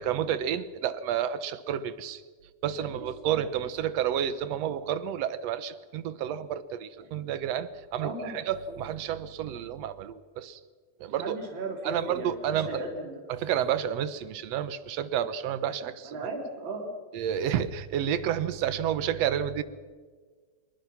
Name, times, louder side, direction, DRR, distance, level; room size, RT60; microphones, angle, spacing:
voice 1, 0.0-2.2 2.6-10.6 11.0-11.4 11.8-12.8 13.3-16.1 17.1-19.6, right 9 dB, 65° right, 14 dB, 2.0 m, -30 dB
voice 2, 3.3-3.6 7.0-7.1 8.0-8.4 8.7-8.8 11.2-13.2 16.0-16.9, right 2 dB, 40° right, 1 dB, 4.1 m, -36 dB
26.0 x 22.5 x 6.0 m, 1.5 s
omnidirectional pair, 3.4 m